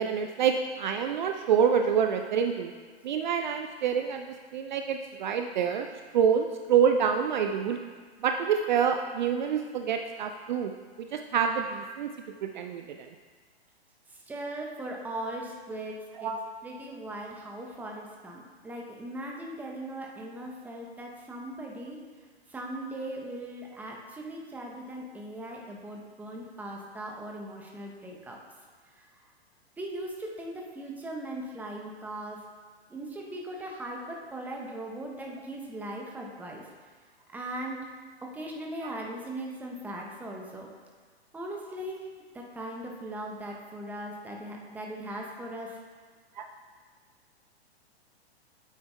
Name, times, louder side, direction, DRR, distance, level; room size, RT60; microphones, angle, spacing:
voice 1, 0.0-2.7 3.0-4.3 4.5-5.9 6.1-7.8 8.2-10.7 11.0-12.1 12.4-13.1 16.1-16.4 38.8-39.0 46.4-46.5, right 7 dB, 45° right, 5 dB, 0.4 m, -27 dB
voice 2, 14.3-16.3 16.6-22.0 22.5-28.4 29.8-32.4 32.9-36.6 37.3-37.8 38.2-40.7 41.3-42.0 42.3-45.8, right 1 dB, 5° right, -1 dB, 0.7 m, -39 dB
9.1 x 7.7 x 2.2 m, 1.5 s
figure-of-eight pair, 110°, 32 cm